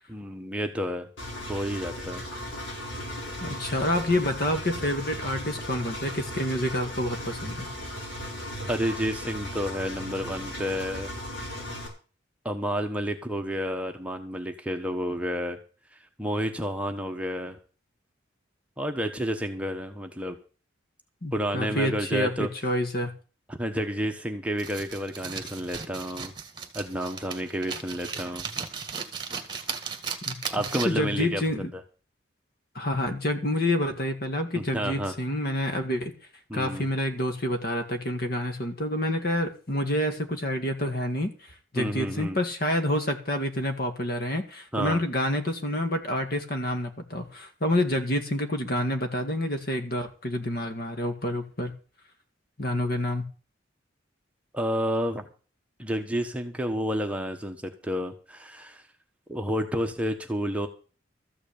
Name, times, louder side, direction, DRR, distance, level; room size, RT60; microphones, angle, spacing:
voice 1, 0.1-1.1 1.5-2.2 8.7-11.1 12.4-15.6 15.9-17.6 18.8-20.4 21.3-22.5 23.5-26.3 26.7-28.5 30.5-31.8 34.5-35.1 36.5-36.9 41.8-42.4 44.7-45.0 54.5-55.3 55.8-58.8 59.3-60.7, equal, 5° right, 5 dB, 1.1 m, -30 dB
Engine, 1.2-11.9, left 1 dB, 75° left, 5.3 m, -36 dB
voice 2, 3.4-7.7 21.2-23.1 30.3-30.5 30.9-31.7 32.7-36.1 36.5-51.7 52.6-53.2, left 1 dB, 50° left, 6 dB, 2.0 m, -28 dB
sound 1, 24.6-31.1, right 6 dB, 25° right, 1.8 m, -36 dB
14.0 x 6.1 x 8.7 m, 0.37 s
head